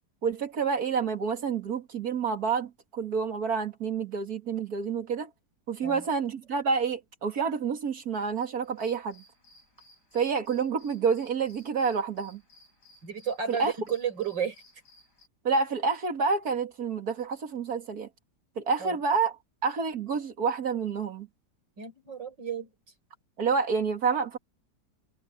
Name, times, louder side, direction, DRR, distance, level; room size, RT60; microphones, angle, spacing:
voice 1, 0.2-5.3 5.7-9.2 10.1-12.4 13.5-13.7 15.4-18.1 18.6-21.3 23.4-24.4, right 5 dB, 55° right, 2.5 m, -28 dB
sound 1, 8.6-15.3, left 1 dB, 65° left, 6.6 m, -59 dB
voice 2, 13.0-14.6 18.8-19.0 21.8-22.7, right 7 dB, 85° right, 5.4 m, -32 dB
omnidirectional pair, 1.9 m